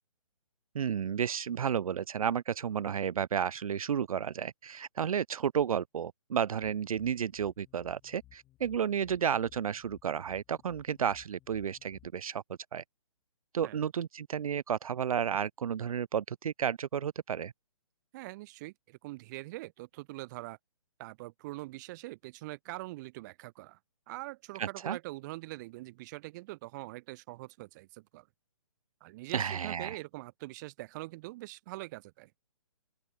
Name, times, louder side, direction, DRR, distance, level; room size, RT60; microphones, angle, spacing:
voice 1, 0.7-12.4 12.7-12.8 13.5-17.5 24.6-25.0 29.3-30.0, right 8 dB, 75° right, 0.4 m, -32 dB
sound 1, 6.6-12.1, left 15 dB, 20° left, 3.5 m, -61 dB
voice 2, 18.1-20.6 21.0-23.8 24.1-28.3 29.0-32.3, right 20 dB, 30° right, 2.7 m, -43 dB
open air
figure-of-eight pair, 140°, 18 cm